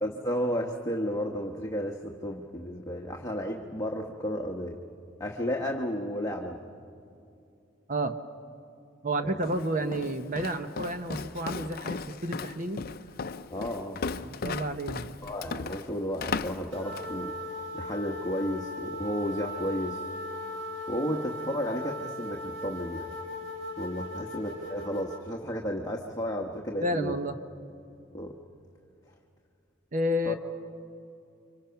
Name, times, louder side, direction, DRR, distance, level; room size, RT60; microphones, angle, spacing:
voice 1, 0.0-4.8 5.2-6.6 9.2-9.4 13.5-14.0 15.2-17.3 17.7-20.0 20.9-23.1 23.8-27.1 28.1-28.3 30.2-30.3, equal, 20° left, 0 dB, 1.2 m, -33 dB
voice 2, 9.0-12.8 14.2-15.1 26.8-27.4 29.9-30.3, right 1 dB, 40° right, 8 dB, 0.9 m, -30 dB
Walk footsteps, 9.4-17.2, left 4 dB, 50° left, 0.6 m, -36 dB
sound 1, 16.7-25.2, left 1 dB, 75° right, 4.1 m, -38 dB
30.0 x 25.0 x 5.8 m, 2.6 s
head